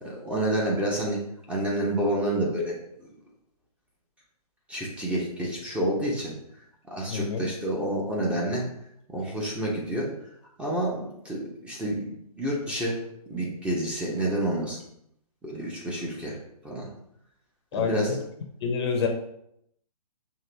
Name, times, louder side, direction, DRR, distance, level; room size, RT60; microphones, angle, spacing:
voice 1, 0.0-1.2 1.5-2.8 4.7-6.3 6.9-8.6 9.1-10.1 10.6-13.0 13.3-14.8 15.4-16.4 16.6-16.9 17.7-18.1, right 1 dB, 5° right, -4 dB, 0.7 m, -29 dB
voice 2, 7.1-7.5 17.7-18.2 18.6-19.1, left 6 dB, 40° left, 3 dB, 0.7 m, -27 dB
5.6 x 2.6 x 3.3 m, 0.75 s
hypercardioid pair, 135°, 20 cm